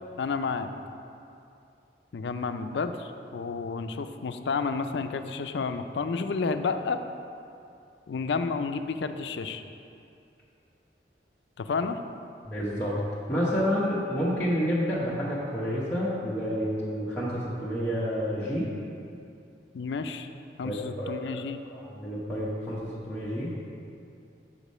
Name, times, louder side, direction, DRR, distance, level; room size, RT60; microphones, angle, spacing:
voice 1, 0.2-0.7 2.1-7.0 8.1-9.6 11.6-12.0 19.7-20.3 20.6-21.6, left 4 dB, 75° left, 8 dB, 0.4 m, -31 dB
voice 2, 12.4-13.0 13.3-18.7 20.6-21.4 21.7-23.5, equal, 10° left, -10 dB, 0.9 m, -29 dB
7.1 x 4.9 x 5.4 m, 2.6 s
head